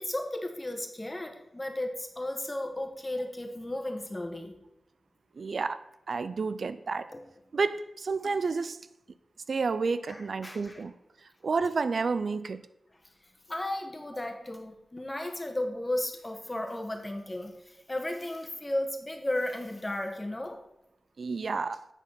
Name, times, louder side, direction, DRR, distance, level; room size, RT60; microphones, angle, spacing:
voice 1, 0.0-4.5 7.1-7.2 8.2-8.3 10.1-10.8 13.5-20.6, left 1 dB, 20° left, 1.3 m, -34 dB
voice 2, 5.4-7.1 7.5-8.8 9.5-10.9 11.2-12.6 21.2-21.9, right 4 dB, 70° right, 0.3 m, -30 dB
9.0 x 4.2 x 5.4 m
wide cardioid pair, 75°, 0 cm